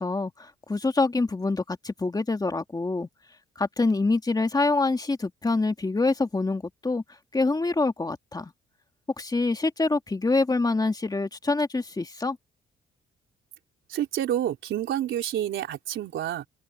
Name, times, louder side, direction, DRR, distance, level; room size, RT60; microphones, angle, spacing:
voice 1, 0.0-3.1 3.6-7.0 7.3-8.5 9.2-12.4, left 3 dB, 20° left, 2.3 m, -26 dB
voice 2, 13.9-16.5, right 11 dB, 75° right, 3.8 m, -28 dB
cardioid pair, 90°, 20 cm